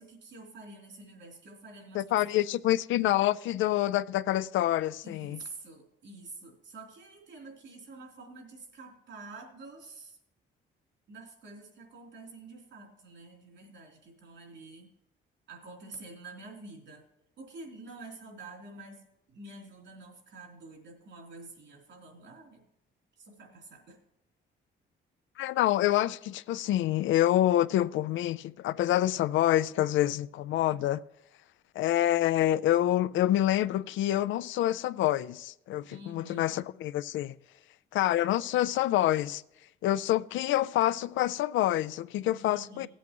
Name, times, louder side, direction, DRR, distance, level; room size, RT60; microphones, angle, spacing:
voice 1, 0.0-2.0 5.0-10.2 11.1-14.9 15.5-17.0 17.4-22.6 23.2-24.0 35.9-36.5 42.3-42.9, right 2 dB, 70° right, 3.1 m, -48 dB
voice 2, 1.9-5.4 25.4-31.0 31.8-37.3 37.9-39.4 39.8-42.9, left 13 dB, 75° left, 0.4 m, -27 dB
16.5 x 8.2 x 3.0 m
cardioid pair, 90°, 20 cm